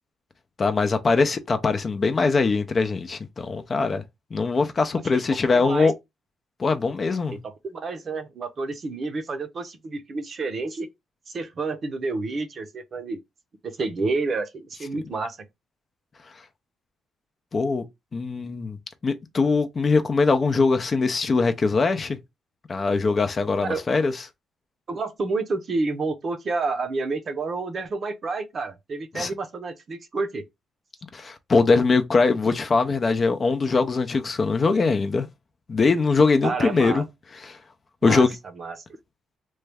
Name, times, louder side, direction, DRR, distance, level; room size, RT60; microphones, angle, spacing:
voice 1, 0.6-4.0 4.3-5.9 6.6-7.4 17.5-17.8 18.1-18.8 19.0-22.2 22.7-24.1 29.1-29.3 31.1-35.3 35.7-37.0 37.4-37.6 38.0-38.3, left 4 dB, 35° left, 0.5 m, -22 dB
voice 2, 5.5-5.9 7.3-10.9 11.3-13.2 13.6-15.4 23.6-23.8 24.9-30.4 36.4-37.0 38.0-38.3 38.6-38.8, right 3 dB, 45° right, 0.7 m, -29 dB
3.0 x 2.3 x 3.4 m
cardioid pair, 90°, 0 cm